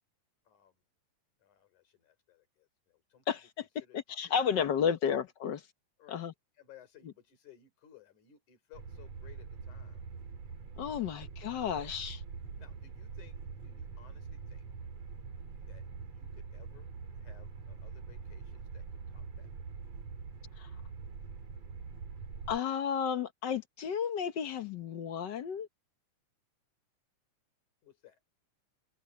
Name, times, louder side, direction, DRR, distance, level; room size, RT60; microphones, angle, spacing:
voice 1, 0.5-0.8 1.4-3.2 3.8-5.2 6.0-6.3 6.6-10.0 10.8-11.3 11.6-11.9 12.6-13.4 13.6-14.7 15.7-15.9 16.1-19.5 27.8-28.2, left 10 dB, 75° left, 5.4 m, -60 dB
voice 2, 3.3-3.7 3.9-5.6 6.1-6.3 10.8-12.2 20.6-20.7 22.5-25.7, left 7 dB, 90° left, 0.9 m, -32 dB
sound 1, 8.7-22.6, right 5 dB, 55° right, 3.5 m, -44 dB
omnidirectional pair, 3.5 m